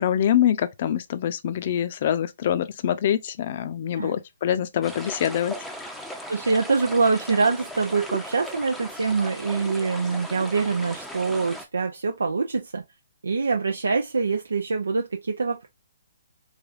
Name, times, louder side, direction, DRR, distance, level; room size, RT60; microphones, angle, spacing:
voice 1, 0.0-5.6, left 10 dB, 45° left, 0.5 m, -24 dB
sound 1, 4.8-11.6, equal, ahead, 0.6 m, -37 dB
voice 2, 6.3-12.8 13.2-15.7, right 4 dB, 85° right, 0.6 m, -24 dB
3.4 x 3.4 x 2.4 m
hypercardioid pair, 145°, 0 cm